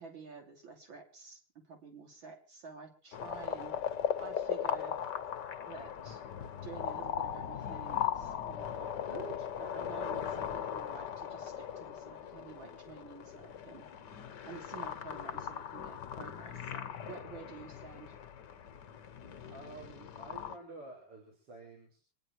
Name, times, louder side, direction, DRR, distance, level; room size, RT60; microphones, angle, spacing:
voice 1, 0.0-3.8 4.2-5.0 5.7-6.2 6.6-13.9 14.4-18.2, right 5 dB, 60° right, 3 dB, 4.0 m, -50 dB
sound 1, 3.1-20.6, left 9 dB, 55° left, 1.6 m, -39 dB
voice 2, 19.5-22.0, right 2 dB, 85° right, -2 dB, 6.0 m, -50 dB
26.5 x 10.5 x 4.6 m, 0.38 s
omnidirectional pair, 2.4 m